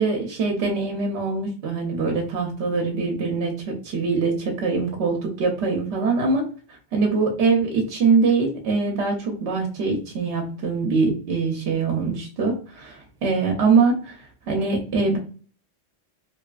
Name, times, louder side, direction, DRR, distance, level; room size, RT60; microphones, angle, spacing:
voice 1, 0.0-6.5 6.9-15.2, right 4 dB, 80° right, 1 dB, 0.9 m, -23 dB
2.8 x 2.3 x 2.3 m, 0.40 s
omnidirectional pair, 1.1 m